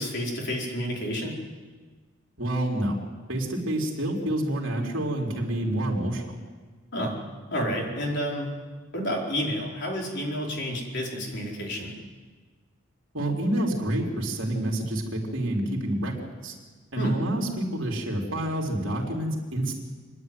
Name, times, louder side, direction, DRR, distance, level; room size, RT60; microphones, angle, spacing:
voice 1, 0.0-1.3 6.9-7.1 7.5-8.5 8.9-11.9 17.0-17.1, equal, 50° left, -1 dB, 4.8 m, -30 dB
voice 2, 2.4-3.0 3.3-6.4 13.1-16.1 16.4-16.5 16.9-19.7, right 1 dB, 55° right, -1 dB, 4.4 m, -28 dB
28.0 x 11.0 x 9.5 m, 1.4 s
head